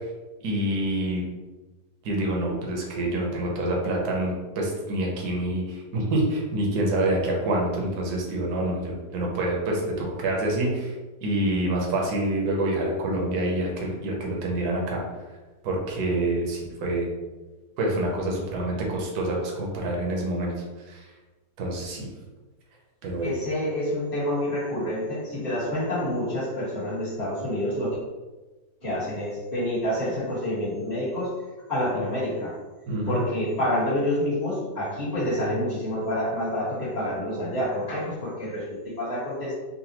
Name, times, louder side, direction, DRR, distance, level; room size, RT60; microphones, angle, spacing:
voice 1, 0.4-1.2 2.0-10.9 11.2-15.0 15.6-17.1 17.8-20.5 20.9-21.1 21.6-22.1 23.0-23.3 32.9-33.2, right 1 dB, 80° right, -1 dB, 1.3 m, -27 dB
voice 2, 23.2-28.0 28.8-31.4 31.7-32.6 33.1-39.5, left 1 dB, 30° left, -10 dB, 1.3 m, -28 dB
3.9 x 2.2 x 2.9 m, 1.2 s
omnidirectional pair, 1.7 m